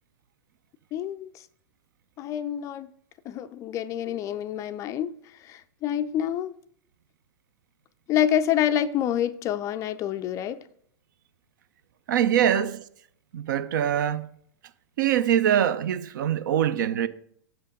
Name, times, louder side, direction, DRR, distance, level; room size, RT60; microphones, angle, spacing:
voice 1, 0.9-1.4 2.2-2.9 3.3-5.1 5.4-6.5 8.1-10.6 12.5-12.7, left 10 dB, 25° left, 0.4 m, -27 dB
voice 2, 12.1-12.8 13.3-14.3 15.0-17.1, right 10 dB, 55° right, 0.5 m, -23 dB
6.9 x 5.5 x 5.1 m
figure-of-eight pair, 100°, 12 cm